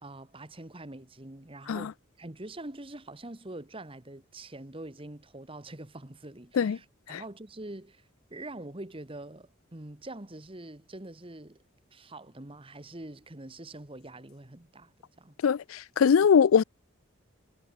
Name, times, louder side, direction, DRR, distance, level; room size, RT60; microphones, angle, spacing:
voice 1, 0.0-8.0 8.3-11.6 11.9-14.9 15.2-15.4, right 2 dB, 25° right, 1.5 m, -44 dB
voice 2, 15.4-16.6, left 7 dB, 80° left, 0.4 m, -22 dB
head